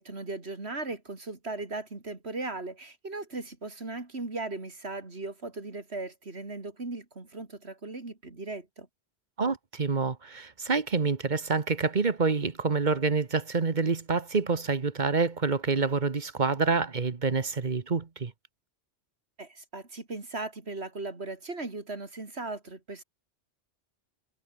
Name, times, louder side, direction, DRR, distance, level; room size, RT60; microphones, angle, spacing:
voice 1, 0.0-8.9 19.4-23.0, right 3 dB, 65° right, 3.7 m, -38 dB
voice 2, 9.4-18.3, right 4 dB, 40° right, 1.4 m, -27 dB
omnidirectional pair, 1.2 m